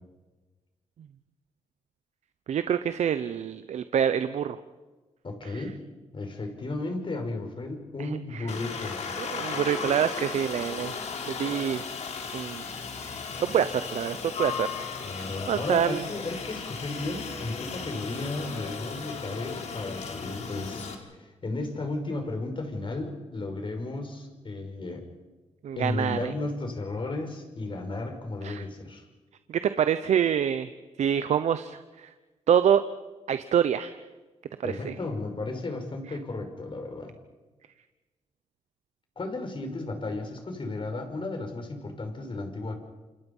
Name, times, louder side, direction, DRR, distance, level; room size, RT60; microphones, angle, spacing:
voice 1, 2.5-4.6 5.4-5.6 8.0-8.5 9.2-11.0 11.3-11.8 12.3-12.6 13.0-16.0 25.6-26.3 28.4-28.6 29.5-30.7 31.0-32.1 32.5-32.8 33.3-34.0 34.6-34.9, right 8 dB, 75° right, 12 dB, 0.9 m, -26 dB
voice 2, 5.2-5.8 6.1-9.0 15.0-20.9 21.2-25.1 25.8-29.1 34.6-37.1 39.2-42.8, left 2 dB, 45° left, 5 dB, 5.9 m, -34 dB
Aircraft, 8.5-20.9, left 5 dB, 75° left, 3.7 m, -36 dB
29.0 x 26.0 x 5.6 m, 1.2 s
cardioid pair, 60°, 12 cm